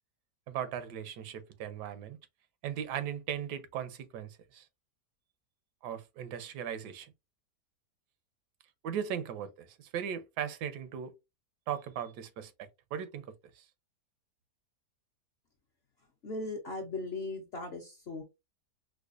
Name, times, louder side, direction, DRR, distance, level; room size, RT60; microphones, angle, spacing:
voice 1, 0.5-2.2 2.6-4.7 5.8-7.1 8.8-11.1 11.7-12.5 12.9-13.2 13.6-13.7, right 9 dB, 85° right, 1.2 m, -38 dB
voice 2, 16.2-18.2, left 2 dB, 60° left, 0.7 m, -38 dB
4.8 x 2.2 x 2.4 m
omnidirectional pair, 1.7 m